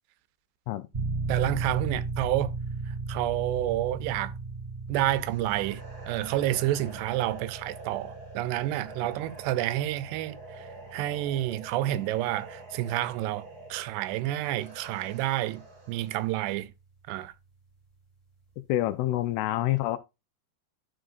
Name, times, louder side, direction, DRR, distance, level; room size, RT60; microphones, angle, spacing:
sound 1, 0.9-15.4, right 3 dB, 5° right, 2.4 m, -37 dB
voice 1, 1.3-2.5 2.9-4.3 4.9-16.7 17.1-17.3, right 14 dB, 85° right, 2.7 m, -29 dB
sound 2, 5.2-16.3, right 2 dB, 35° right, 1.5 m, -47 dB
voice 2, 18.7-20.0, left 15 dB, 80° left, 2.5 m, -27 dB
12.5 x 5.1 x 2.5 m
omnidirectional pair, 4.8 m